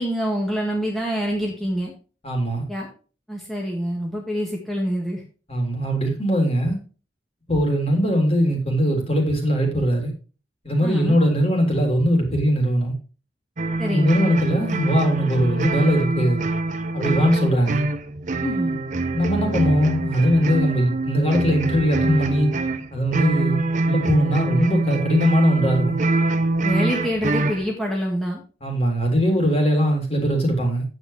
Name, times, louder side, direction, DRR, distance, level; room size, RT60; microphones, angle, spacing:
voice 1, 0.0-1.9 2.7-2.9 3.3-5.2 10.8-11.2 13.8-14.3 18.4-18.8 26.6-28.4, equal, ahead, 1.8 m, -26 dB
voice 2, 2.2-2.7 5.5-6.8 7.5-10.1 10.6-12.9 13.9-16.4 16.9-17.8 19.1-22.5 22.9-26.0 28.6-30.8, equal, 35° left, 3.5 m, -20 dB
sound 1, 13.6-27.7, right 2 dB, 45° right, 0.9 m, -24 dB
9.7 x 8.2 x 3.4 m
head